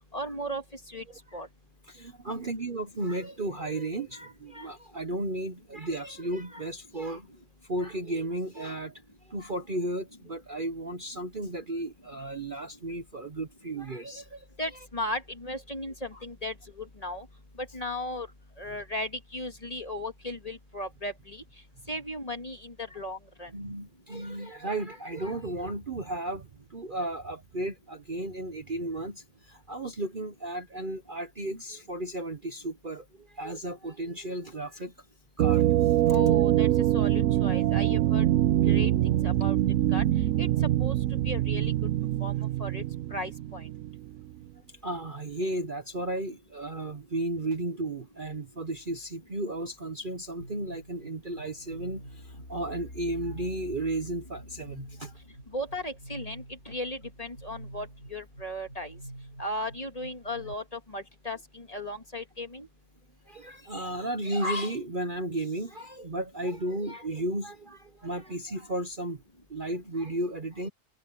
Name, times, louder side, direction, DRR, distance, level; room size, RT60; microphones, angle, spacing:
voice 1, 0.1-1.0 1.3-1.5 14.6-17.3 17.6-18.3 18.6-21.4 21.9-23.5 36.1-36.7 36.9-38.3 38.7-38.9 39.2-39.6 39.9-40.0 40.4-40.5 40.8-41.0 41.2-41.7 42.2-42.3 42.6-42.8 43.1-43.7 55.5-59.0 59.4-62.7, left 1 dB, 25° left, 2.1 m, -36 dB
voice 2, 1.1-1.4 1.9-7.3 7.7-14.5 16.1-16.2 22.9-23.0 23.5-34.9 35.4-36.2 44.8-55.1 63.3-69.2 69.5-70.7, right 1 dB, 35° right, 1.2 m, -34 dB
sound 1, 35.4-44.1, right 13 dB, 65° right, 0.9 m, -24 dB
sound 2, 50.4-60.5, equal, 60° left, 6.1 m, -46 dB
omnidirectional pair, 1.6 m